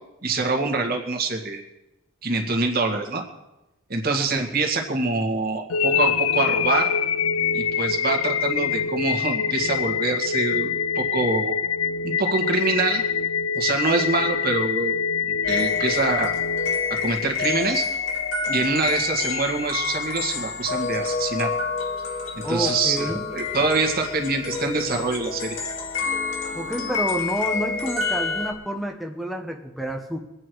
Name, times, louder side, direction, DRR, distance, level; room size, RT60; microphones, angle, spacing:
voice 1, 0.2-1.6 2.2-3.2 3.9-6.9 7.5-10.7 10.9-11.5 12.0-13.0 13.5-15.0 15.4-16.3 16.9-17.9 18.5-21.5 22.4-25.6, right 3 dB, 45° right, 3 dB, 2.0 m, -25 dB
sound 1, 5.7-17.7, left 6 dB, 90° left, 0.5 m, -25 dB
sound 2, 15.4-28.5, left 4 dB, 65° left, 2.2 m, -28 dB
voice 2, 22.4-23.3 26.5-30.2, right 1 dB, ahead, 3 dB, 1.0 m, -29 dB
23.5 x 8.8 x 4.7 m, 0.97 s
head